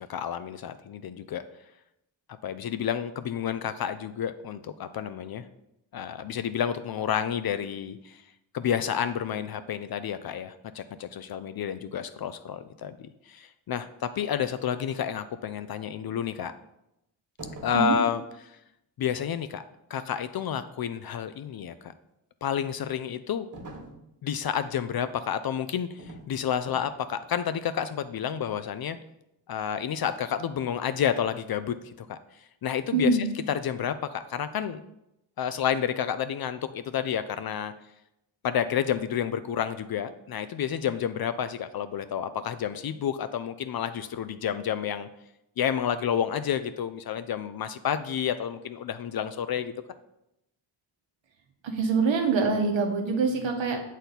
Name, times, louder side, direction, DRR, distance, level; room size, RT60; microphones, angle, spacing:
voice 1, 0.0-1.4 2.4-5.5 5.9-8.2 8.5-16.5 17.6-18.6 19.0-19.6 19.9-21.9 22.4-23.5 24.2-29.0 29.5-34.8 35.4-37.7 38.4-45.1 45.6-49.7, left 8 dB, 55° left, 11 dB, 0.5 m, -30 dB
sound 1, 17.4-18.0 23.5-24.1 26.0-26.3 26.7-26.9, right 2 dB, 45° right, 1.6 m, -43 dB
voice 2, 32.9-33.2 51.6-53.8, right 4 dB, 80° right, 4 dB, 1.1 m, -24 dB
6.6 x 4.2 x 4.0 m, 0.85 s
cardioid pair, 50°, 45 cm